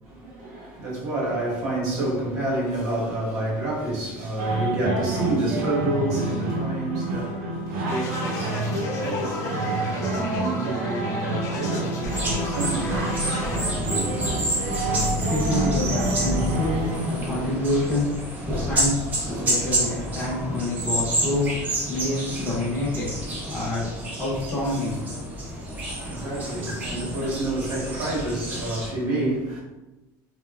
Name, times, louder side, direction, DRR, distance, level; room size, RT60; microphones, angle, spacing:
voice 1, 0.0-14.5 25.5-29.6, right 2 dB, 50° right, 1.0 m, -29 dB
sound 1, 4.4-17.1, right 2 dB, 90° right, 0.6 m, -28 dB
sound 2, 7.9-13.6, left 3 dB, 40° left, 0.4 m, -35 dB
sound 3, 12.0-28.9, right 1 dB, 20° right, 0.5 m, -29 dB
voice 2, 15.2-21.5 21.9-23.1 23.5-23.9 24.2-25.0, left 2 dB, 20° left, 0.8 m, -27 dB
3.0 x 2.2 x 2.3 m
cardioid pair, 165°, 8 cm